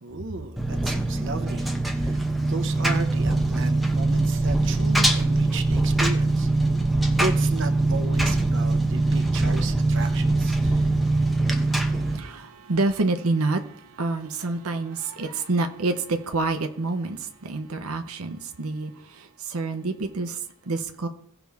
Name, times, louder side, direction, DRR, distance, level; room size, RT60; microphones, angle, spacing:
voice 1, 0.0-6.5 7.2-10.9, right 3 dB, 60° right, 0.9 m, -34 dB
Engine, 0.6-12.2, right 2 dB, ahead, 0.9 m, -22 dB
voice 2, 10.7-21.1, right 3 dB, 85° right, 0.9 m, -28 dB
16.5 x 5.9 x 3.5 m
head